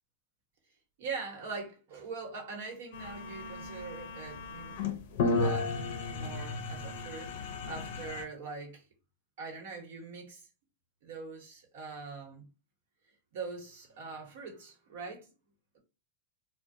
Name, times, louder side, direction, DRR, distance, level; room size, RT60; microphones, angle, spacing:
voice 1, 1.0-4.8 5.2-8.8 9.4-10.5 11.0-12.5 13.3-15.3, right 4 dB, 75° right, 1.0 m, -42 dB
sound 1, 2.9-8.2, left 3 dB, 70° left, 0.4 m, -34 dB
2.5 x 2.0 x 2.6 m
supercardioid pair, 155°, 0 cm